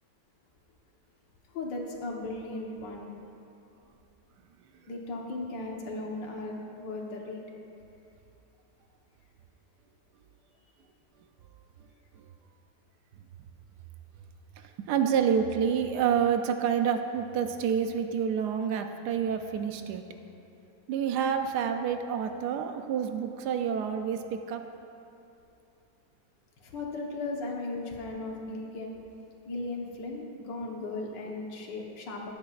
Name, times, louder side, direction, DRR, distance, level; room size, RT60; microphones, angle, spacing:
voice 1, 1.5-3.1 4.9-7.4 26.6-28.9 29.5-32.3, left 2 dB, 90° left, 0 dB, 1.8 m, -36 dB
voice 2, 14.8-20.0 20.9-24.6, right 7 dB, 75° right, 7 dB, 1.1 m, -28 dB
12.5 x 10.0 x 2.4 m, 2.8 s
omnidirectional pair, 1.9 m